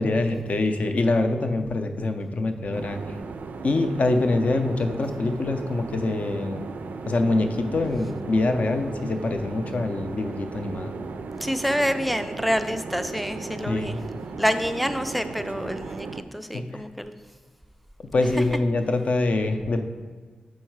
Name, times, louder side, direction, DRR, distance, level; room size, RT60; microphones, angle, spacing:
voice 1, 0.0-3.2 3.6-6.7 7.1-11.0 13.6-14.0 16.5-16.8 18.1-19.8, left 2 dB, 55° left, 7 dB, 0.5 m, -25 dB
sound 1, 2.7-16.2, right 4 dB, 80° right, 0.3 m, -36 dB
voice 2, 11.4-14.0 14.4-17.1, equal, ahead, 9 dB, 0.3 m, -27 dB
6.4 x 4.6 x 4.6 m, 1.5 s
wide cardioid pair, 125°, 3 cm